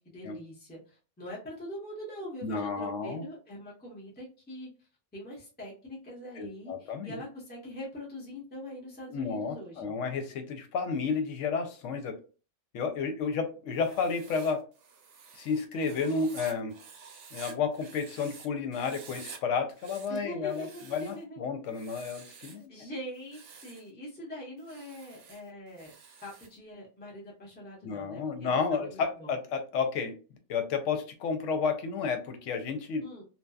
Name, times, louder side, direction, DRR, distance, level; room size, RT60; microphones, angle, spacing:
voice 1, 0.0-9.9 20.1-21.4 21.9-22.0 22.7-25.9 26.2-29.3 33.0-33.2, equal, 10° left, -5 dB, 0.7 m, -43 dB
voice 2, 2.4-3.2 6.4-7.2 9.1-12.2 12.7-14.6 15.3-16.7 17.3-22.7 27.8-30.2 30.5-33.0, left 5 dB, 85° left, 6 dB, 0.9 m, -31 dB
Writing, 13.7-18.5 18.7-19.4 19.7-21.2 21.7-22.7 23.2-23.9 24.6-26.6, right 5 dB, 65° right, 0.7 m, -50 dB
2.7 x 2.2 x 2.3 m, 0.35 s
omnidirectional pair, 1.3 m